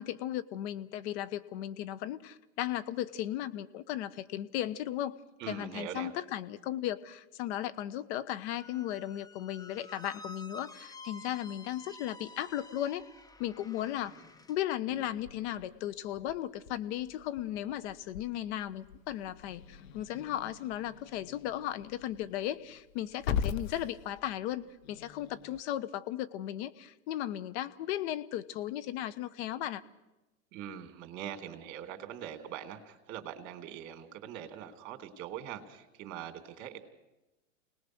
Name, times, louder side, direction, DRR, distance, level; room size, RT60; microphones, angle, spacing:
voice 1, 0.0-5.2 5.5-13.0 13.4-14.2 14.5-29.8, left 12 dB, 55° left, 11 dB, 1.4 m, -36 dB
voice 2, 5.4-6.1 30.5-36.8, right 9 dB, 45° right, 7 dB, 3.3 m, -42 dB
Squeak, 8.5-14.6, left 2 dB, 10° left, 0.9 m, -50 dB
Growling / Hiss, 14.9-25.6, left 8 dB, 75° left, 1.5 m, -42 dB
29.0 x 19.5 x 6.4 m, 1.0 s
hypercardioid pair, 115°, 40 cm